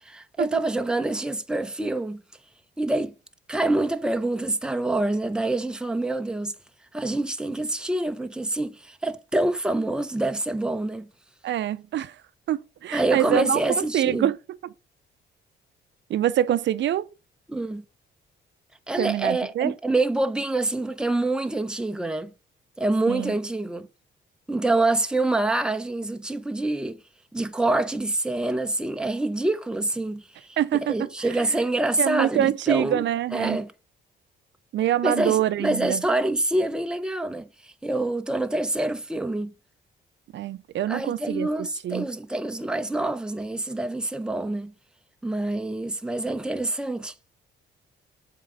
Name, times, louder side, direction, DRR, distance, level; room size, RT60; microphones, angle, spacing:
voice 1, 0.1-2.2 2.8-3.2 3.5-6.5 6.9-11.1 12.9-14.3 17.5-17.8 18.9-22.3 22.8-23.9 24.5-27.0 27.3-30.5 30.8-33.1 33.3-33.7 35.0-39.5 40.9-44.7 45.2-47.1, right 2 dB, 5° right, 0.7 m, -26 dB
voice 2, 11.4-12.2 12.5-14.4 14.6-14.7 16.1-17.1 19.0-19.7 23.1-23.3 30.6-31.6 32.0-33.6 34.7-36.0 40.3-42.1, right 11 dB, 65° right, 0.6 m, -25 dB
7.4 x 3.8 x 5.5 m
cardioid pair, 90°, 20 cm